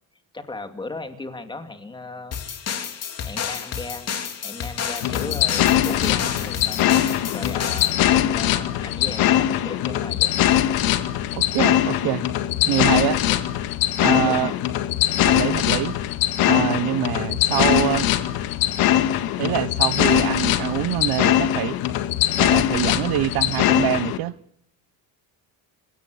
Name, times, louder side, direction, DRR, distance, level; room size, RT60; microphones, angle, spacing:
voice 1, 0.3-2.4 3.2-4.1 4.4-6.8 7.3-10.3 13.1-13.4 14.2-14.6, left 3 dB, 15° left, 2.4 m, -36 dB
sound 1, 2.3-7.9, left 7 dB, 45° left, 3.4 m, -31 dB
sound 2, 5.0-24.2, left 12 dB, 75° left, 1.9 m, -21 dB
voice 2, 11.3-12.3 12.7-13.2 14.0-14.5 15.2-16.0 16.4-18.1 19.4-21.8 22.4-24.3, right 16 dB, 85° right, 1.0 m, -25 dB
29.5 x 17.0 x 8.3 m
cardioid pair, 160°, 36 cm